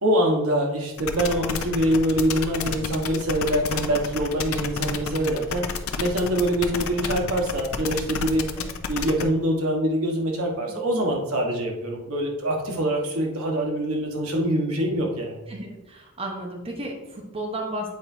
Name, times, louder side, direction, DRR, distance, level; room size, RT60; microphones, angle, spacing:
voice 1, 0.0-5.6 6.0-8.5 8.9-15.4, right 1 dB, 90° right, 0 dB, 1.3 m, -24 dB
sound 1, 1.0-9.2, left 6 dB, 75° left, 0.5 m, -30 dB
voice 2, 15.5-17.9, right 1 dB, 25° right, 0 dB, 0.9 m, -33 dB
8.1 x 4.5 x 2.7 m, 1.0 s
head